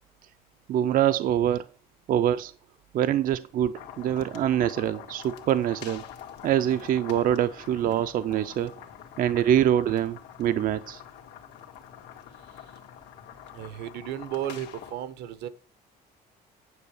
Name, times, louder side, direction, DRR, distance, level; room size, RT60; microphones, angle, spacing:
voice 1, 0.7-1.7 2.1-2.5 2.9-6.0 6.4-8.7 9.2-11.0, right 11 dB, 55° right, 0.5 m, -24 dB
sound 1, 3.7-14.9, left 9 dB, 90° left, 1.7 m, -45 dB
voice 2, 13.5-15.5, right 11 dB, 80° right, 1.0 m, -34 dB
9.6 x 6.4 x 4.8 m
cardioid pair, 110°, 17 cm